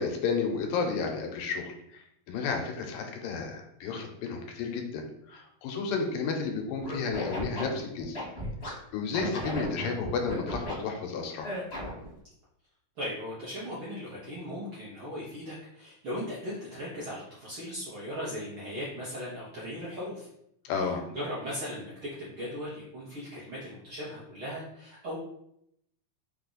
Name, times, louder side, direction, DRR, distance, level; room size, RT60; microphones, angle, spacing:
voice 1, 0.0-2.0 2.3-5.0 5.3-8.2 8.9-11.5 20.7-21.0, left 5 dB, 85° left, 3 dB, 2.4 m, -32 dB
Scratching (performance technique), 6.8-8.7 9.1-10.7 11.4-12.1, equal, 45° left, 0.8 m, -35 dB
voice 2, 13.0-20.3 20.6-25.2, equal, 70° right, -8 dB, 1.2 m, -38 dB
5.5 x 2.4 x 3.8 m, 0.75 s
omnidirectional pair, 4.0 m